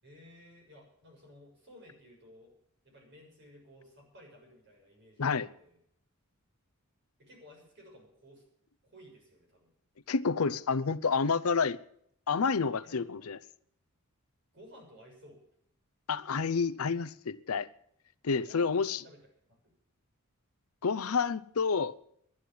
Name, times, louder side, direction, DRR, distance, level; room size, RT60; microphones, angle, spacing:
voice 1, 0.0-2.5 2.8-5.8 7.2-8.4 8.8-9.7 12.8-13.3 14.5-15.4 18.4-19.2 19.5-19.7, equal, 55° right, 7.0 m, -56 dB
voice 2, 10.1-11.8 12.3-13.4 16.1-17.7 18.2-19.0 20.8-21.9, left 5 dB, 85° left, 0.6 m, -29 dB
11.0 x 11.0 x 8.5 m
head